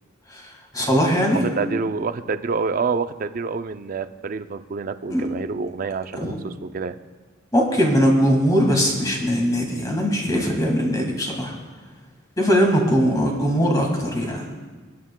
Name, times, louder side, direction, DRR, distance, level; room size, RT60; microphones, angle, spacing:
voice 1, 0.7-1.4 5.1-5.3 6.2-6.3 7.5-11.5 12.4-14.4, equal, 20° left, 0 dB, 1.6 m, -20 dB
voice 2, 1.3-7.0, right 4 dB, 40° right, 11 dB, 0.4 m, -27 dB
22.5 x 9.4 x 2.2 m, 1.4 s
head